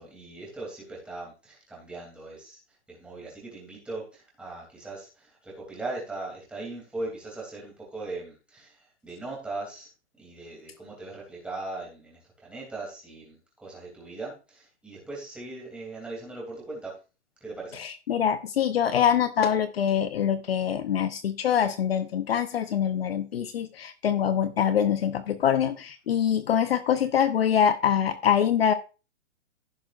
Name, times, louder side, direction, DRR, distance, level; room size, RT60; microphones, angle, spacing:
voice 1, 0.0-2.6 2.9-9.9 10.2-17.0 17.4-17.8, right 2 dB, 5° right, 2.9 m, -39 dB
voice 2, 17.8-28.7, left 8 dB, 55° left, 0.9 m, -24 dB
15.5 x 6.1 x 2.5 m
hypercardioid pair, 170°, 36 cm